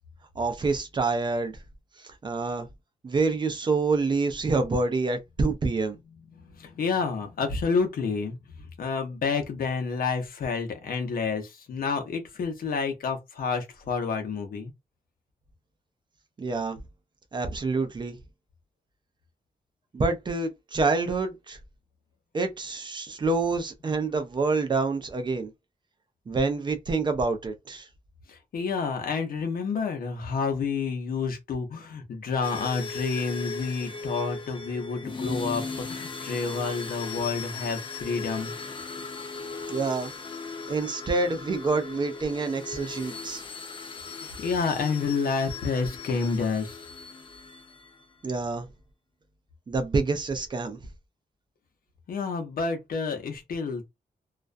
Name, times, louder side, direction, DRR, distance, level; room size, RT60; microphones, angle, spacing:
voice 1, 0.4-1.5 2.2-2.7 3.0-6.0 16.4-16.8 17.3-18.2 19.9-21.6 22.3-25.5 26.3-27.9 39.7-40.1 40.7-43.4 48.2-48.7 49.7-50.8, right 3 dB, 30° right, 0.4 m, -27 dB
voice 2, 6.6-8.4 8.8-14.7 28.3-38.5 44.2-46.8 52.1-53.9, left 5 dB, 75° left, 0.7 m, -29 dB
sound 1, 32.4-48.0, left 4 dB, 35° left, 0.4 m, -38 dB
2.3 x 2.1 x 2.4 m
wide cardioid pair, 175°, 15 cm